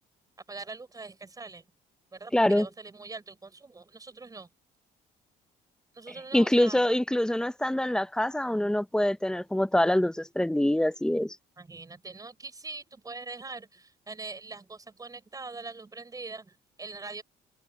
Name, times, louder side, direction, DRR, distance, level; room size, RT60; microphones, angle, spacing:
voice 1, 0.5-1.6 2.1-4.5 5.9-6.8 11.6-17.2, right 3 dB, 20° right, 5.1 m, -42 dB
voice 2, 2.3-2.7 6.3-11.4, left 1 dB, 5° left, 0.9 m, -25 dB
cardioid pair, 110°, 17 cm